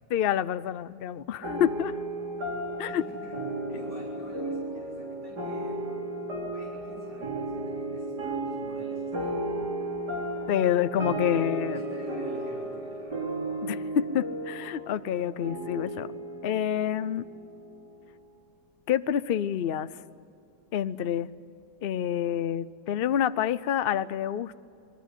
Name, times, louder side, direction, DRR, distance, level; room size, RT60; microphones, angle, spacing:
voice 1, 0.1-2.0 2.8-3.0 10.5-11.8 13.6-16.1 16.4-17.2 18.9-19.9 20.7-21.3 21.8-24.5, left 9 dB, 65° left, 14 dB, 0.5 m, -27 dB
sound 1, 1.4-18.2, right 1 dB, 65° right, 4.5 m, -34 dB
voice 2, 2.9-3.4 3.7-5.8 6.5-9.5 11.6-13.3, right 1 dB, 50° right, -4 dB, 4.7 m, -47 dB
26.5 x 22.0 x 9.3 m, 2.6 s
omnidirectional pair, 1.9 m